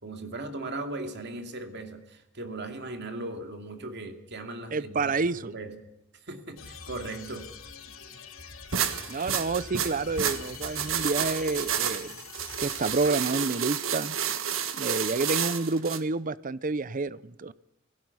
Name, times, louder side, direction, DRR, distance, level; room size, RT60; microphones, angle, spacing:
voice 1, 0.0-5.1 5.5-5.8 6.3-7.5, right 2 dB, 55° right, 5 dB, 2.6 m, -38 dB
voice 2, 4.7-5.5 9.1-12.1 12.6-14.2 14.7-17.5, right 3 dB, 40° right, 18 dB, 0.6 m, -29 dB
sound 1, 6.6-13.1, left 5 dB, 80° left, 3.8 m, -45 dB
sound 2, 8.7-16.0, right 8 dB, 75° right, 1.6 m, -30 dB
17.0 x 16.5 x 9.7 m, 0.90 s
head